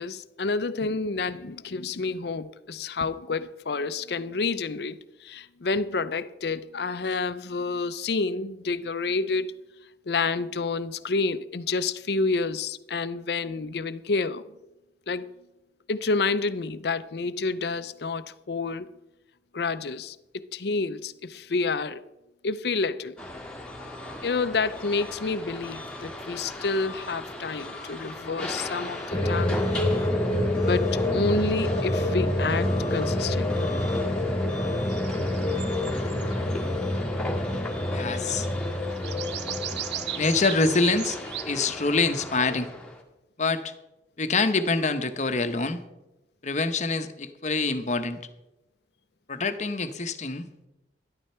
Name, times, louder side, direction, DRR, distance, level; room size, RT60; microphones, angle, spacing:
voice 1, 0.0-9.5 10.1-14.4 15.1-15.3 15.9-18.9 19.5-22.0 22.4-23.3 24.2-29.8 30.6-33.7, left 4 dB, 60° left, 0.6 m, -29 dB
sound 1, 23.2-43.0, left 1 dB, 5° left, 1.8 m, -38 dB
sound 2, 29.1-41.2, left 1 dB, 25° left, 1.6 m, -27 dB
sound 3, 34.9-36.5 38.0-38.6 38.9-41.5, right 12 dB, 65° right, 0.6 m, -37 dB
voice 2, 37.9-38.5 40.2-41.2 41.5-42.7 43.4-43.7 44.2-45.8 46.4-48.2 49.3-50.5, left 3 dB, 40° left, 0.9 m, -25 dB
13.0 x 11.5 x 4.4 m
head